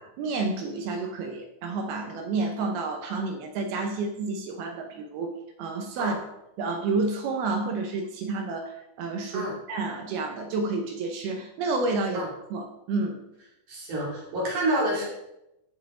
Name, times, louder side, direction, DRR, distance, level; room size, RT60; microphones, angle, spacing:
voice 1, 0.2-6.3 6.6-13.2, right 3 dB, 75° right, 4 dB, 2.5 m, -30 dB
voice 2, 13.7-15.1, right 1 dB, 50° right, -3 dB, 3.8 m, -28 dB
16.5 x 5.6 x 3.7 m, 0.88 s
omnidirectional pair, 5.0 m